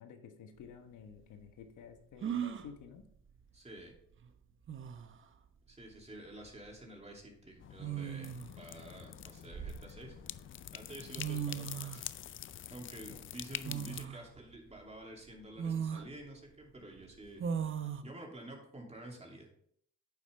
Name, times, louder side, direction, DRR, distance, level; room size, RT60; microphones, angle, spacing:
voice 1, 0.0-3.1 13.1-13.2, left 7 dB, 80° left, 6 dB, 1.2 m, -52 dB
sound 1, 0.6-0.7 2.2-2.7 4.2-4.3 4.7-5.2 6.5-6.7 7.8-8.6 9.2-10.2 10.9-11.0 11.2-12.0 13.6-14.2 14.8-14.9 15.6-16.1 17.4-18.0, right 8 dB, 45° right, 0.8 m, -37 dB
voice 2, 3.5-3.9 5.7-10.1 10.7-12.1 12.7-17.4 18.0-19.5, right 1 dB, 20° right, 0 dB, 2.8 m, -50 dB
sound 2, 7.6-14.1, left 11 dB, 45° left, 0.4 m, -46 dB
9.3 x 7.2 x 3.4 m, 0.64 s
cardioid pair, 90°, 30 cm